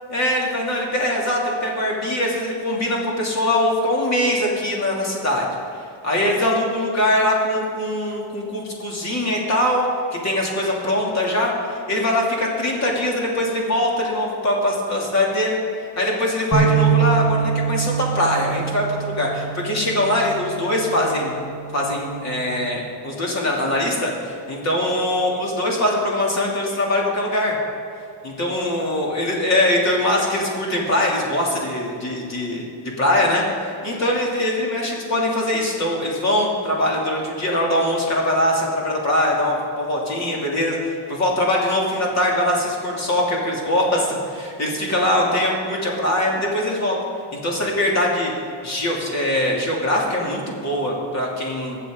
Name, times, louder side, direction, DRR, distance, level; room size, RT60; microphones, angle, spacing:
voice 1, 0.1-5.5 6.0-9.9 10.2-15.6 16.0-21.3 21.7-27.6 28.2-32.6 33.0-47.0 47.3-48.3 48.6-51.8, left 1 dB, 35° left, -2 dB, 3.0 m, -22 dB
sound 1, 16.5-22.8, right 8 dB, ahead, 2.3 m, -24 dB
21.0 x 7.7 x 4.0 m, 2.4 s
cardioid pair, 130°, 49 cm